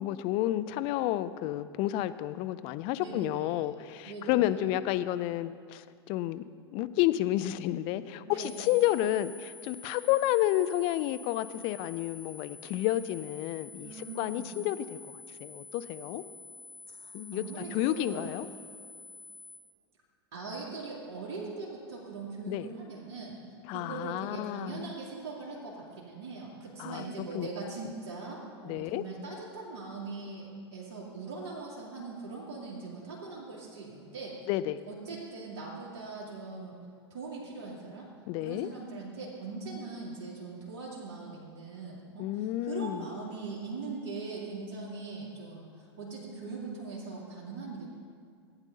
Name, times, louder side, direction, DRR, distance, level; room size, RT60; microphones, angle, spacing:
voice 1, 0.0-6.4 6.7-16.2 17.1-18.5 22.5-22.7 23.7-24.9 26.8-27.0 27.3-27.5 28.6-29.0 34.5-34.8 38.3-38.7 42.2-43.1, left 14 dB, 40° left, 13 dB, 0.5 m, -31 dB
voice 2, 3.0-3.7 4.0-4.6 8.2-8.7 13.8-14.6 16.9-18.3 20.3-23.4 23.7-34.4 34.9-36.8 37.1-38.1 38.4-47.9, right 3 dB, 50° right, -5 dB, 2.4 m, -41 dB
sound 1, 8.4-19.6, left 3 dB, 10° right, 2.9 m, -49 dB
14.5 x 9.0 x 4.0 m, 2.2 s
figure-of-eight pair, 90°, 14 cm